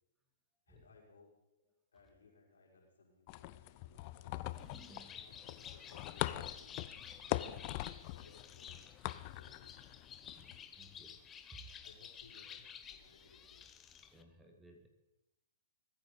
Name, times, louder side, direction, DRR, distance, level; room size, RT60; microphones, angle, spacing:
voice 1, 0.7-1.3 1.9-4.6 5.2-6.7 7.4-7.8 8.0-8.9 9.3-9.9 11.8-13.7, left 4 dB, 85° left, -2 dB, 5.9 m, -63 dB
sound 1, 3.3-10.6, left 17 dB, 40° left, 0.6 m, -43 dB
Bird, 4.5-14.2, left 8 dB, 20° left, 1.0 m, -52 dB
voice 2, 4.6-5.4 10.3-11.2 11.5-11.6 14.1-14.9, right 1 dB, 10° right, 4 dB, 2.2 m, -58 dB
21.0 x 9.6 x 5.3 m, 0.93 s
hypercardioid pair, 135°, 0 cm